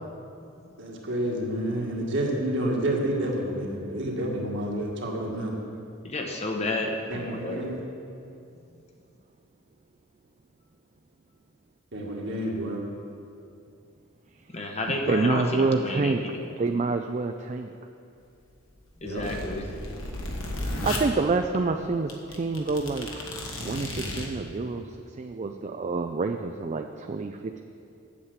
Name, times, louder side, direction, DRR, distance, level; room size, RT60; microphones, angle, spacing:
voice 1, 0.8-5.5 7.1-7.8 11.9-12.8 19.0-19.3, right 1 dB, 55° right, -1 dB, 1.8 m, -29 dB
voice 2, 6.0-7.7 14.5-16.4 19.0-19.6, left 2 dB, 30° left, 1 dB, 1.0 m, -31 dB
voice 3, 14.7-16.2 16.6-17.7 20.5-23.1 23.6-27.6, right 3 dB, 35° right, 5 dB, 0.4 m, -28 dB
sound 1, 18.8-21.0 21.7-21.8 22.1-24.3, left 1 dB, 65° left, 1.5 m, -34 dB
8.6 x 7.3 x 8.1 m, 2.5 s
head